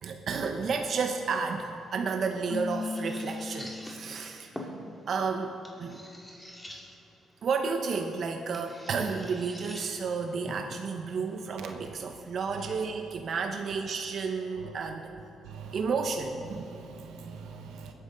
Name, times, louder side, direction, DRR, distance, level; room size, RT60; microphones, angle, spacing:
voice 1, 0.0-4.7 5.1-6.0 6.7-6.8 7.4-15.1 15.7-16.7, right 5 dB, 55° right, 4 dB, 0.9 m, -32 dB
sound 1, 1.7-12.6, equal, 5° left, 2.2 m, -48 dB
Keyboard (musical), 2.5-4.5, left 4 dB, 35° left, 0.4 m, -37 dB
voice 2, 15.4-15.9 16.5-17.9, right 5 dB, 90° right, 3 dB, 1.4 m, -44 dB
21.0 x 9.4 x 3.9 m, 2.9 s
cardioid pair, 90°, 0 cm